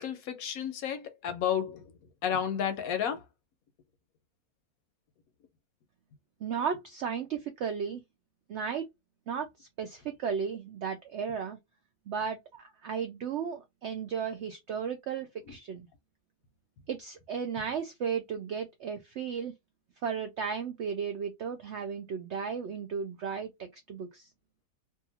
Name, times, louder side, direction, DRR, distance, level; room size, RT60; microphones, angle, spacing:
voice 1, 0.0-1.9 2.2-3.2 15.5-15.6, left 8 dB, 70° left, 1.0 m, -32 dB
voice 2, 6.4-8.0 8.5-8.9 9.3-11.6 12.1-15.9 16.9-19.5 20.0-24.3, right 6 dB, 90° right, 0.6 m, -35 dB
2.7 x 2.5 x 2.7 m
omnidirectional pair, 1.8 m